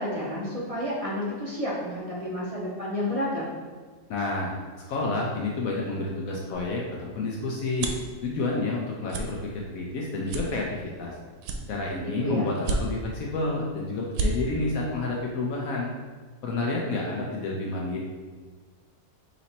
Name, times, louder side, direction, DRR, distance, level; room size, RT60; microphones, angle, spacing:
voice 1, 0.0-3.5 12.0-12.5, left 1 dB, 45° right, -6 dB, 0.4 m, -30 dB
voice 2, 4.1-4.5 4.9-7.9 8.2-11.1 11.7-15.9 16.4-18.0, left 2 dB, 70° left, -2 dB, 1.0 m, -29 dB
sound 1, 6.5-8.1 8.6-8.8 9.1-9.3 9.7-9.9 10.3-11.0 11.4-12.1 12.6-13.2 13.6-13.7 14.0-14.3, right 3 dB, 90° right, 1.2 m, -30 dB
4.0 x 3.1 x 4.1 m, 1.5 s
omnidirectional pair, 1.7 m